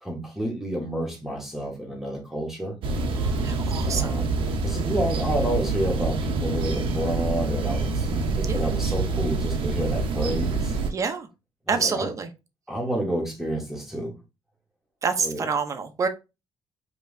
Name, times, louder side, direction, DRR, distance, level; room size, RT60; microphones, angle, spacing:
voice 1, 0.0-2.8 3.8-4.4 4.6-10.7 11.7-12.1 12.7-14.1 15.2-15.5, right 1 dB, 5° right, 1.2 m, -30 dB
sound 1, 2.8-10.9, right 3 dB, 75° right, 0.8 m, -26 dB
voice 2, 3.4-4.1 8.5-8.6 10.9-11.3 11.7-12.3 15.0-16.1, right 5 dB, 35° right, 0.7 m, -27 dB
5.4 x 2.9 x 2.6 m
cardioid pair, 155°, 9 cm